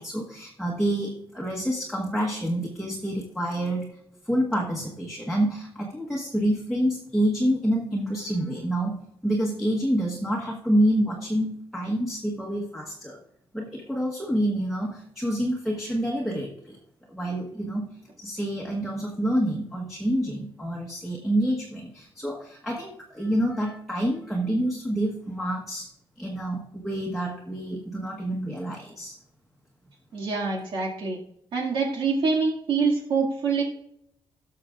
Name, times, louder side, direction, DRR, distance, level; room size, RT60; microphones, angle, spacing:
voice 1, 0.0-3.9 4.3-13.2 13.5-16.8 17.1-17.9 18.2-25.9 26.2-29.1, right 1 dB, ahead, -3 dB, 1.2 m, -27 dB
voice 2, 30.1-31.2 31.5-33.6, right 4 dB, 65° right, -2 dB, 2.2 m, -25 dB
17.5 x 6.6 x 2.5 m, 0.75 s
wide cardioid pair, 180°, 9 cm